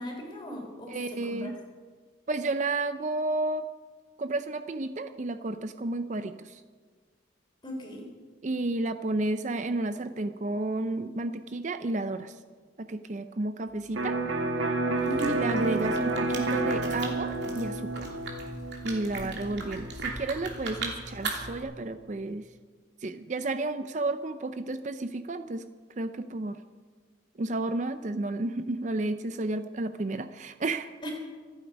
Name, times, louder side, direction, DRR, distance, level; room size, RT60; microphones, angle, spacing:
voice 1, 0.0-1.5 7.6-8.0 15.0-15.4 19.1-19.5 31.0-31.1, equal, 25° left, 1 dB, 3.5 m, -37 dB
voice 2, 0.9-1.5 2.3-3.7 4.2-6.6 8.4-12.4 12.8-14.2 15.3-18.1 18.8-22.5 23.0-25.6 26.0-26.6 27.4-30.9, right 2 dB, 40° right, 10 dB, 0.5 m, -32 dB
Electric guitar, 14.0-21.6, right 2 dB, 90° right, 1.4 m, -31 dB
sound 1, 14.9-21.6, right 3 dB, 60° right, 2.9 m, -39 dB
26.0 x 8.6 x 5.3 m, 1.5 s
head